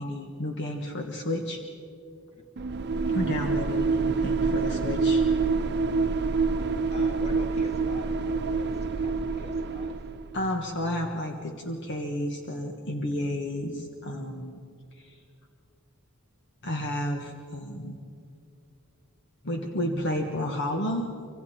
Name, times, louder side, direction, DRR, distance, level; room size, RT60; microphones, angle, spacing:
voice 1, 0.0-1.6 3.1-5.2 10.3-14.6 15.0-15.2 16.6-18.0 19.4-21.1, left 1 dB, 55° left, 3 dB, 1.5 m, -31 dB
sound 1, 2.6-10.4, right 4 dB, 50° right, 0.7 m, -26 dB
voice 2, 6.6-10.0, equal, 30° left, 2 dB, 2.4 m, -45 dB
26.0 x 25.5 x 4.4 m, 2.4 s
head